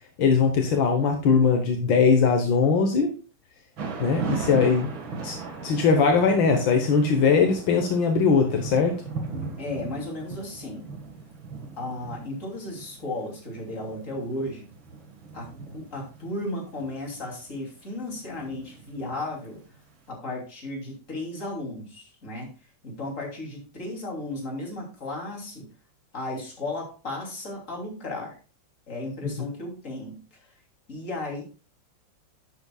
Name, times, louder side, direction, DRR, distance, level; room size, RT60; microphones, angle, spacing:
voice 1, 0.2-3.1 4.0-4.9 5.2-5.4 5.6-9.0, left 5 dB, 80° left, 4 dB, 1.9 m, -20 dB
Thunder / Rain, 3.8-19.8, right 4 dB, 90° right, 2.5 m, -38 dB
voice 2, 9.6-10.9 11.8-14.7 15.3-19.6 20.1-22.5 22.8-25.7 26.1-28.4 28.9-30.4 30.9-31.4, left 2 dB, 40° left, -1 dB, 3.3 m, -34 dB
11.0 x 8.3 x 2.3 m, 0.34 s
omnidirectional pair, 2.1 m